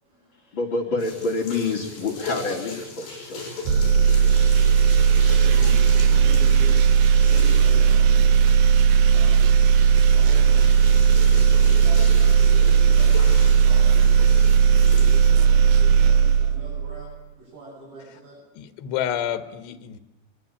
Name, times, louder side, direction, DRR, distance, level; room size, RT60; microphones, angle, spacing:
voice 1, 0.0-0.7 5.2-5.8 6.2-6.7 7.1-8.6 9.1-9.6 10.1-10.8 11.4-14.2 15.0-18.4, right 2 dB, 50° right, -6 dB, 9.5 m, -42 dB
voice 2, 0.5-3.5, left 3 dB, 30° left, 1 dB, 3.0 m, -27 dB
sound 1, 1.0-15.3, left 3 dB, 60° left, 9.2 m, -38 dB
sound 2, 3.7-17.0, right 7 dB, 80° right, 3.2 m, -16 dB
voice 3, 18.6-20.0, left 10 dB, 85° left, 11 dB, 3.6 m, -29 dB
23.5 x 23.0 x 8.9 m, 1.0 s
omnidirectional pair, 4.9 m